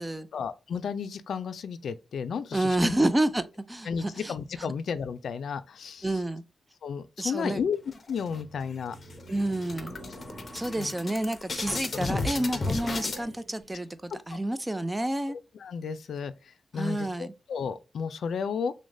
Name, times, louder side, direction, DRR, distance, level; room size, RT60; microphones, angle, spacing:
voice 1, 0.3-2.9 3.9-6.1 6.8-7.8 8.1-9.0 10.8-10.9 14.3-14.4 15.6-18.7, left 6 dB, 80° left, 0.3 m, -33 dB
voice 2, 2.5-4.3 4.6-4.7 6.0-6.4 7.2-7.6 9.3-9.9 10.5-15.4 16.7-17.3, right 1 dB, 15° right, 0.3 m, -29 dB
sound 1, 7.9-8.6 9.0-9.1 9.4-13.2, left 3 dB, 45° left, 0.6 m, -33 dB
Laughter, 8.1-14.4, right 1 dB, 75° right, 1.0 m, -49 dB
6.2 x 2.1 x 2.6 m
wide cardioid pair, 105°, 0 cm